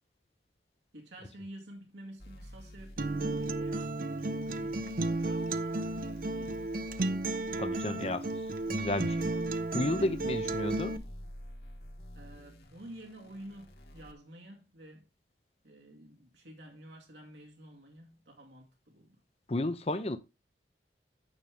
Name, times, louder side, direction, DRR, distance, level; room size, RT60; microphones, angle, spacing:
voice 1, 0.9-6.7 12.1-15.1 15.6-19.2, right 1 dB, 80° right, 2.0 m, -51 dB
sound 1, 2.2-14.1, equal, 60° left, 1.8 m, -50 dB
Acoustic guitar, 3.0-11.0, right 2 dB, 50° right, 0.7 m, -33 dB
voice 2, 7.6-8.2 8.6-9.4 9.7-11.0 19.5-20.2, left 1 dB, 35° left, 0.7 m, -32 dB
9.6 x 6.3 x 3.4 m
head